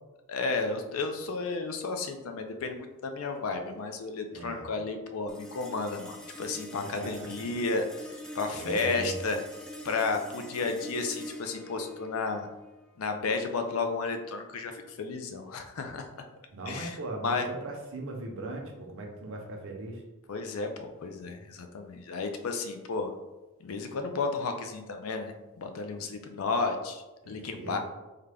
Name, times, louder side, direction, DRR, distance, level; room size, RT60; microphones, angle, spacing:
voice 1, 0.3-9.4 9.8-12.5 13.0-16.1 16.7-17.0 17.2-17.4 20.3-23.1 23.6-27.8, left 4 dB, 65° left, 5 dB, 0.4 m, -32 dB
voice 2, 4.3-4.7 6.8-7.5 8.5-9.1 16.5-20.0 27.2-27.8, right 2 dB, 60° right, 1 dB, 0.6 m, -39 dB
sound 1, 5.3-15.9, equal, 5° left, 0.3 m, -46 dB
3.6 x 2.2 x 3.4 m, 1.1 s
head